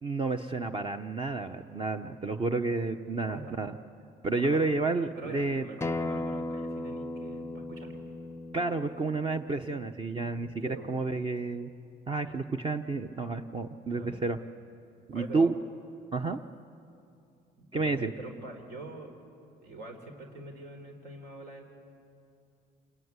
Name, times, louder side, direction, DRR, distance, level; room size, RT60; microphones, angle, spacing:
voice 1, 0.0-3.8 4.2-5.6 8.5-11.7 12.1-14.4 15.1-15.5 16.1-16.4 17.7-18.1, right 3 dB, 30° right, 7 dB, 0.9 m, -30 dB
voice 2, 3.1-3.6 4.3-4.6 5.2-8.0 10.6-10.9 13.9-14.2 15.1-15.5 17.6-19.1 19.6-21.8, right 2 dB, 75° right, 4 dB, 4.0 m, -44 dB
Acoustic guitar, 5.8-11.0, left 2 dB, 15° left, 0.6 m, -37 dB
26.5 x 20.5 x 9.7 m, 2.5 s
cardioid pair, 110°, 17 cm